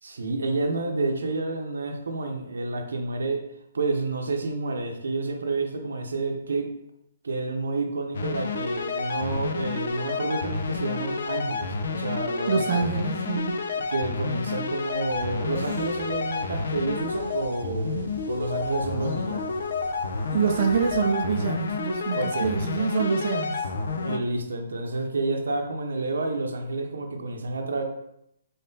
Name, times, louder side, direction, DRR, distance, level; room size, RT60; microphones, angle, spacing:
voice 1, 0.0-3.4 3.7-6.7 7.2-12.9 13.9-19.6 22.1-22.5 24.0-27.8, right 3 dB, 90° right, 4 dB, 0.6 m, -29 dB
sound 1, 8.1-24.2, left 4 dB, 70° left, 0.5 m, -30 dB
voice 2, 12.5-13.6 20.3-23.7, right 5 dB, 45° right, 2 dB, 0.4 m, -26 dB
sound 2, 15.1-21.1, equal, 65° right, 0.9 m, -44 dB
3.8 x 3.5 x 2.7 m, 0.80 s
hypercardioid pair, 160°, 0 cm